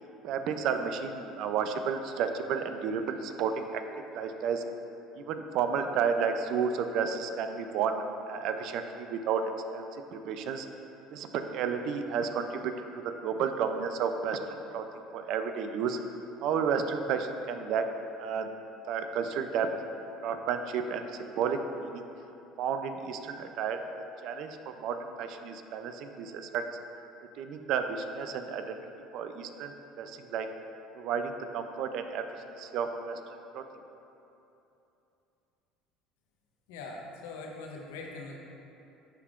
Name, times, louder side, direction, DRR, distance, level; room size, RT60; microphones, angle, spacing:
voice 1, 0.2-3.8 4.1-4.6 5.2-9.4 9.7-10.7 11.1-14.8 15.1-17.9 18.2-18.5 18.9-19.7 20.2-22.1 22.6-23.8 24.2-26.6 27.4-28.8 29.1-30.5 30.9-32.3 32.6-33.2 33.5-33.6, right 6 dB, 65° right, 7 dB, 0.4 m, -32 dB
voice 2, 36.7-38.4, left 3 dB, 85° left, 0 dB, 0.7 m, -42 dB
11.0 x 3.6 x 2.5 m, 2.9 s
supercardioid pair, 90°, 0 cm